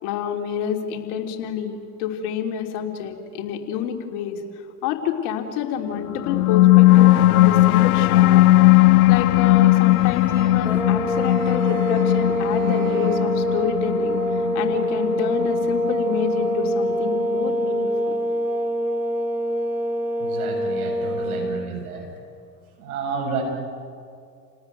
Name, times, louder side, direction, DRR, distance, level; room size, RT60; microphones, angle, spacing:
voice 1, 0.0-4.4 4.8-8.4 8.7-18.1, left 8 dB, 65° left, 3 dB, 3.4 m, -28 dB
sound 1, 6.1-17.1, left 17 dB, 85° left, 0.7 m, -17 dB
sound 2, 9.6-14.2, right 7 dB, 50° right, 5.4 m, -42 dB
sound 3, 10.6-21.7, equal, 5° right, 2.9 m, -25 dB
voice 2, 20.2-22.1 22.8-23.4, right 4 dB, 80° right, 1 dB, 7.5 m, -30 dB
29.5 x 18.5 x 9.3 m, 2.3 s
hypercardioid pair, 80°, 43 cm